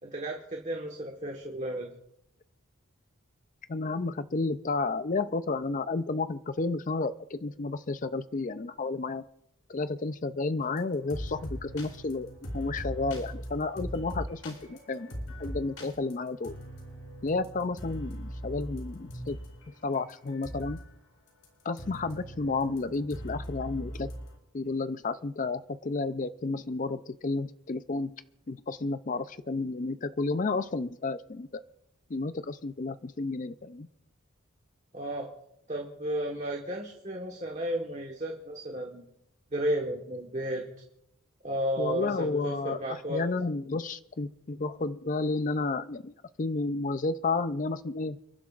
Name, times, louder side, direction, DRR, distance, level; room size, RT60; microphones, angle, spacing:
voice 1, 0.0-1.9 34.9-35.3 35.7-39.0 39.5-40.6 41.4-43.2, right 1 dB, 30° right, 1 dB, 1.4 m, -33 dB
voice 2, 3.7-9.2 9.7-15.1 15.4-16.5 17.2-19.4 19.8-20.8 21.6-24.1 24.5-28.2 28.5-31.6 32.1-33.9 41.8-46.1 46.4-48.2, left 3 dB, 35° left, 12 dB, 0.4 m, -31 dB
sound 1, 10.6-20.9 21.3-24.3, equal, 80° left, 4.5 m, -40 dB
29.5 x 11.5 x 2.5 m, 0.78 s
head